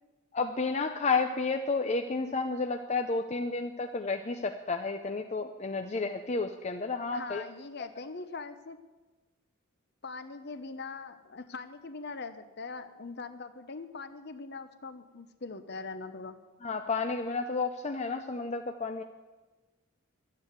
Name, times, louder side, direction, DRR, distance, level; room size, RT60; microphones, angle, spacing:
voice 1, 0.3-7.4 16.6-19.0, left 4 dB, 30° left, 5 dB, 0.5 m, -31 dB
voice 2, 7.1-8.8 10.0-16.4, left 4 dB, 50° left, 11 dB, 0.9 m, -42 dB
12.5 x 9.6 x 8.1 m, 1.2 s
head